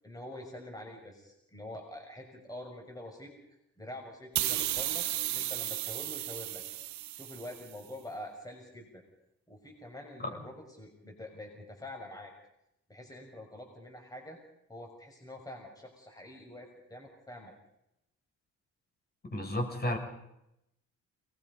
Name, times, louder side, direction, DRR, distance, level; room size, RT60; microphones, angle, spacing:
voice 1, 0.0-3.3 3.8-6.6 7.1-9.0 9.5-12.3 12.9-14.4 14.7-17.5, left 1 dB, 10° left, 2 dB, 5.9 m, -46 dB
sound 1, 4.3-7.7, right 13 dB, 70° right, 0.9 m, -34 dB
voice 2, 19.2-20.0, left 1 dB, 30° left, 2 dB, 7.1 m, -32 dB
29.5 x 20.5 x 5.5 m, 0.84 s
cardioid pair, 90°, 30 cm